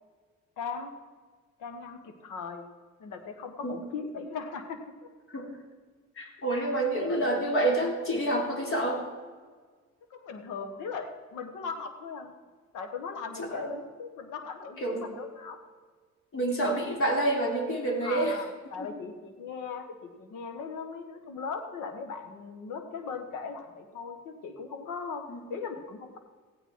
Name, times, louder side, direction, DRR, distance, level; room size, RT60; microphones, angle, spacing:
voice 1, 0.6-0.9 1.6-2.7 3.0-5.1 6.6-7.3 10.1-12.3 12.7-15.6 18.0-26.2, left 5 dB, 85° left, 7 dB, 1.5 m, -39 dB
voice 2, 6.2-9.0 13.4-13.7 14.8-15.1 16.3-18.3 18.8-18.9 25.3-25.4, right 1 dB, 45° left, 1 dB, 3.1 m, -28 dB
15.5 x 9.5 x 4.6 m, 1.5 s
cardioid pair, 90°, 30 cm